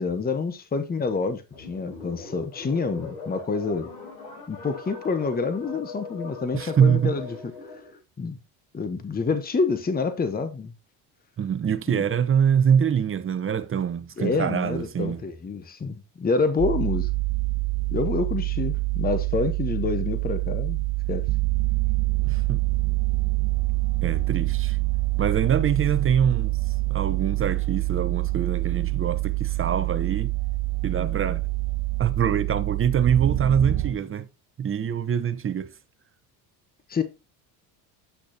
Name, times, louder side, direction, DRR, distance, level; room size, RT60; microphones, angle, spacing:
voice 1, 0.0-3.9 4.5-7.3 8.2-8.4 8.7-10.7 14.2-17.1 17.9-20.8 21.1-21.3 36.9-37.0, left 4 dB, 20° left, 1.0 m, -27 dB
sound 1, 1.5-8.0, left 4 dB, 80° left, 4.3 m, -40 dB
voice 2, 6.5-7.1 11.4-15.2 22.2-22.6 24.0-24.8 25.2-26.6 26.9-30.3 30.8-31.5 32.0-34.3 34.6-35.7, right 8 dB, 30° right, 0.9 m, -24 dB
sound 2, 16.6-33.9, right 21 dB, 70° right, 0.9 m, -26 dB
8.3 x 6.2 x 2.8 m
supercardioid pair, 85°, 42 cm